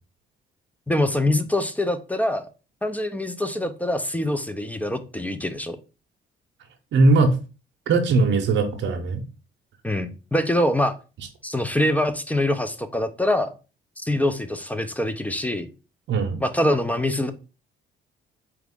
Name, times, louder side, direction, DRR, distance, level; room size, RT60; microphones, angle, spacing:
voice 1, 0.9-2.5 2.8-5.8 9.8-11.0 11.4-13.5 14.0-15.7 16.4-17.3, left 1 dB, 10° left, 9 dB, 0.4 m, -24 dB
voice 2, 6.9-7.3 7.9-9.2 16.1-16.4, right 3 dB, 70° right, 3 dB, 0.7 m, -19 dB
4.4 x 2.4 x 3.6 m, 0.32 s
cardioid pair, 90°, 20 cm